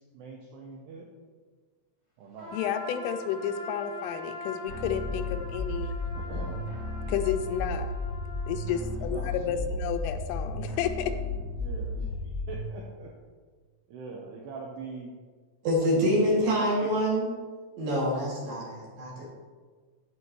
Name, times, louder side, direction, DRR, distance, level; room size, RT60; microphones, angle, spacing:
voice 1, 0.1-1.1 2.2-2.6 6.1-6.7 9.0-9.7 11.6-12.2 12.5-13.1 13.9-15.1 15.9-16.6, right 4 dB, 80° right, -1 dB, 2.4 m, -42 dB
Trumpet, 2.4-8.8, left 1 dB, 10° left, 1.2 m, -42 dB
voice 2, 2.5-6.0 7.1-7.9 8.5-11.1, left 8 dB, 85° left, 8 dB, 3.1 m, -31 dB
sound 1, 4.7-12.7, left 2 dB, 35° right, 2.7 m, -34 dB
voice 3, 15.6-17.3 17.8-19.3, equal, 55° right, -6 dB, 3.5 m, -26 dB
15.5 x 5.6 x 3.1 m, 1.5 s
omnidirectional pair, 5.7 m